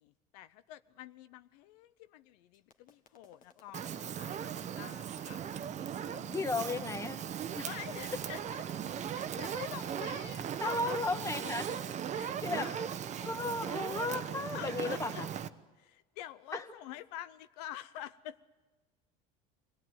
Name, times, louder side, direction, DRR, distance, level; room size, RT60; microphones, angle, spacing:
voice 1, 0.0-5.4 6.1-6.5 7.6-8.4 9.1-11.1 11.4-11.5 12.1-12.9 14.5-15.2 15.8-18.4, left 12 dB, 80° left, 14 dB, 0.7 m, -47 dB
sound 1, 2.5-13.8, left 5 dB, 45° left, 1.9 m, -60 dB
Fire, 3.7-15.5, right 9 dB, 35° right, 0.9 m, -38 dB
voice 2, 6.3-7.3 7.5-7.7 8.1-8.2 10.6-11.7 12.4-12.7 13.2-15.3 16.5-16.6, left 2 dB, 15° left, 9 dB, 1.7 m, -35 dB
23.5 x 16.5 x 9.1 m, 1.2 s
supercardioid pair, 110°, 20 cm